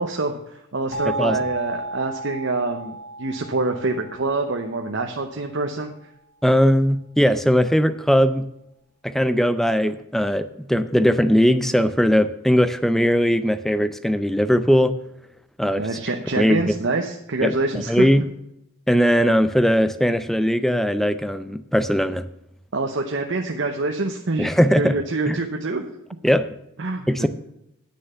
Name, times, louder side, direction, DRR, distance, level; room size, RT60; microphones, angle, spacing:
voice 1, 0.0-5.9 15.8-18.1 22.7-25.8 26.8-27.3, right 3 dB, 60° right, 3 dB, 0.8 m, -26 dB
sound 1, 0.9-5.6, right 2 dB, 70° left, 3.2 m, -34 dB
voice 2, 6.4-8.5 9.0-14.9 15.6-15.9 16.4-16.7 17.4-18.2 18.9-22.3 24.4-25.0 25.3-25.4 26.2-26.5 27.1-27.3, equal, ahead, 12 dB, 0.4 m, -19 dB
9.6 x 6.7 x 6.8 m, 0.81 s
head